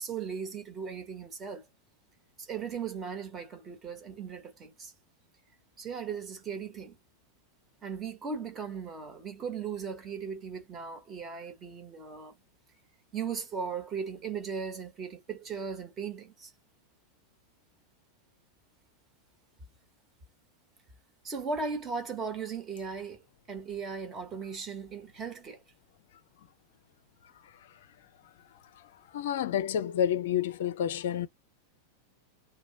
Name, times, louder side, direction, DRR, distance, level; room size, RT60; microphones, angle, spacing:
voice 1, 0.0-1.7 2.4-4.9 5.8-7.0 7.8-12.4 13.1-16.5 21.2-25.6, right 5 dB, 25° right, 1.2 m, -37 dB
voice 2, 29.1-31.3, left 9 dB, 55° left, 0.4 m, -29 dB
3.0 x 2.2 x 3.9 m
figure-of-eight pair, 90°, 0 cm